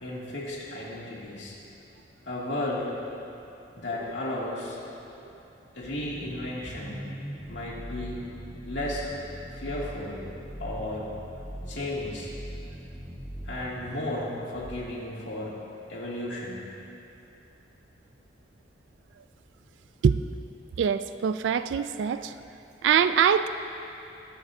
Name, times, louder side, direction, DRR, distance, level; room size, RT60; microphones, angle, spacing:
voice 1, 0.0-1.5 2.3-2.9 3.8-4.8 5.7-7.1 7.5-8.3 8.7-9.1 9.5-10.2 10.6-11.1 11.7-12.3 13.4-15.6 15.9-16.7, left 1 dB, 85° left, -6 dB, 2.3 m, -34 dB
sound 1, 5.8-14.8, equal, ahead, 1.2 m, -41 dB
voice 2, 20.8-22.3 22.8-23.5, right 7 dB, 85° right, 13 dB, 0.3 m, -23 dB
21.5 x 7.2 x 2.7 m, 2.9 s
head